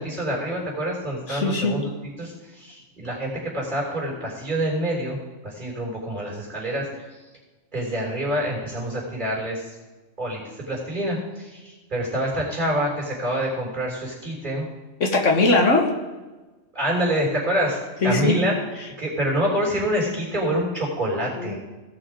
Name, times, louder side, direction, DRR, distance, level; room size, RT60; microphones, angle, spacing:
voice 1, 0.0-1.9 2.2-5.2 5.4-7.1 7.7-9.7 10.2-14.7 16.7-17.8 18.0-18.5 19.0-21.6, right 1 dB, 35° right, -2 dB, 4.1 m, -26 dB
voice 2, 1.3-1.8 15.0-15.9 18.0-18.4 21.4-21.6, left 3 dB, 70° left, 2 dB, 1.9 m, -20 dB
17.0 x 6.0 x 4.9 m, 1.2 s
omnidirectional pair, 1.3 m